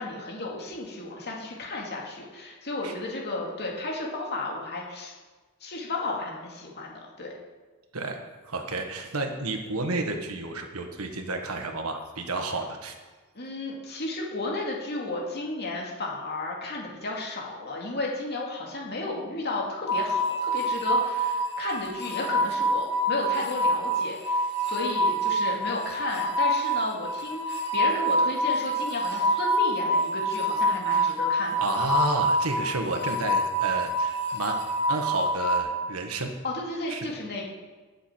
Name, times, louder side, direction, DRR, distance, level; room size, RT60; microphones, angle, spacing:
voice 1, 0.0-5.1 5.6-7.3 13.3-31.7 36.4-37.4, left 2 dB, 50° left, -2 dB, 2.3 m, -33 dB
voice 2, 8.5-12.9 30.9-31.1 31.6-34.6 34.9-36.3 36.9-37.1, right 2 dB, 90° right, 4 dB, 1.5 m, -31 dB
sound 1, 19.9-35.6, equal, 80° left, 2.8 m, -26 dB
19.5 x 7.0 x 4.5 m, 1.3 s
head